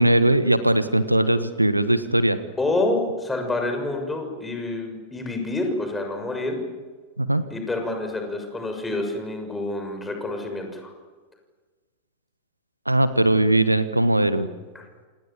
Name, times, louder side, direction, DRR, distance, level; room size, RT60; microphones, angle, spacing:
voice 1, 0.0-2.4 7.2-7.4 12.8-14.5, right 1 dB, 85° right, 13 dB, 1.3 m, -20 dB
voice 2, 2.6-6.6 7.5-10.9 14.7-14.8, left 2 dB, 10° left, 4 dB, 6.7 m, -28 dB
28.0 x 27.5 x 7.4 m, 1.4 s
figure-of-eight pair, 90°, 0 cm